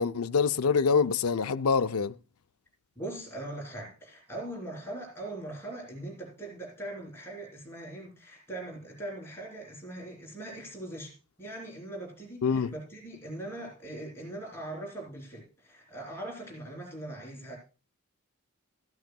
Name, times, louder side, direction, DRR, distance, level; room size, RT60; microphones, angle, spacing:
voice 1, 0.0-2.1 12.4-12.7, left 5 dB, 75° left, 0.5 m, -25 dB
voice 2, 2.9-11.1 11.4-17.6, right 1 dB, 10° left, 3.3 m, -41 dB
14.5 x 12.0 x 2.2 m
head